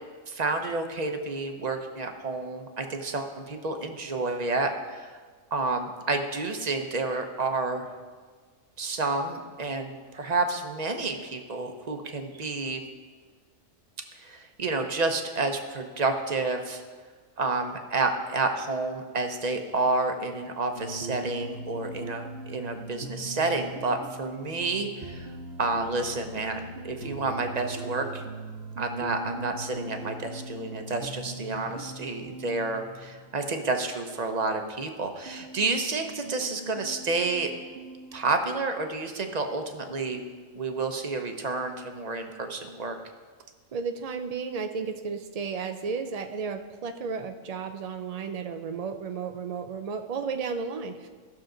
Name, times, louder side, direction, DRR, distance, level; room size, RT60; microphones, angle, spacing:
voice 1, 0.3-5.1 5.5-7.9 8.8-12.8 14.2-16.8 17.4-25.3 25.6-28.2 28.8-37.5 38.1-40.2 40.5-43.0, right 3 dB, 40° right, 6 dB, 0.7 m, -30 dB
sound 1, 20.8-33.6 35.3-38.4, right 2 dB, 55° right, 1.1 m, -41 dB
voice 2, 43.7-51.1, right 5 dB, 85° right, 6 dB, 0.3 m, -33 dB
15.5 x 6.4 x 3.8 m, 1.5 s
omnidirectional pair, 1.4 m